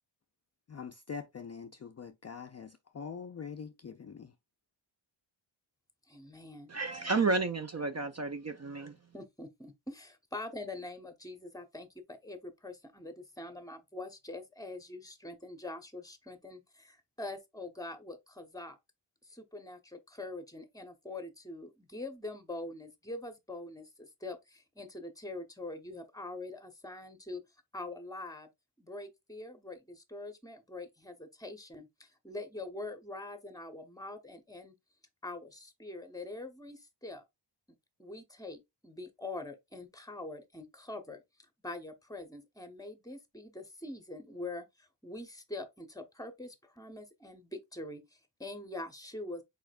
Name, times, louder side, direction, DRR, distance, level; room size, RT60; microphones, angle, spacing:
voice 1, 0.7-4.4, left 6 dB, 35° left, 0.4 m, -44 dB
voice 2, 6.1-6.7 9.1-18.8 19.2-27.4 27.7-28.5 28.8-34.7 35.2-37.2 38.0-41.2 41.6-49.4, left 2 dB, 5° left, 1.0 m, -44 dB
voice 3, 6.7-8.9, right 4 dB, 35° right, 0.5 m, -31 dB
4.8 x 4.4 x 2.4 m
wide cardioid pair, 110°, 48 cm